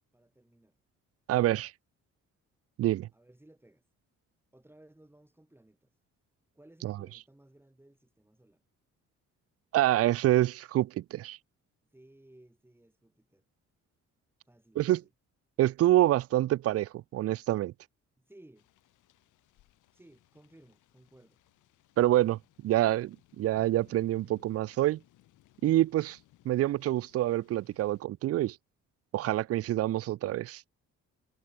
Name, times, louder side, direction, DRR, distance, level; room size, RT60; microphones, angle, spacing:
voice 1, 0.1-0.8 3.1-3.9 4.5-5.9 6.5-8.6 11.9-13.4 14.5-15.1 18.2-18.7 19.9-21.4, right 1 dB, 5° right, 3.3 m, -59 dB
voice 2, 1.3-1.7 2.8-3.1 6.8-6.9 9.7-11.4 14.8-15.0 15.6-17.7 22.0-25.0 25.6-26.2 26.5-28.6 29.1-30.6, right 14 dB, 50° right, 0.4 m, -26 dB
sound 1, 18.6-28.0, left 15 dB, 85° left, 4.1 m, -64 dB
cardioid pair, 90°, 30 cm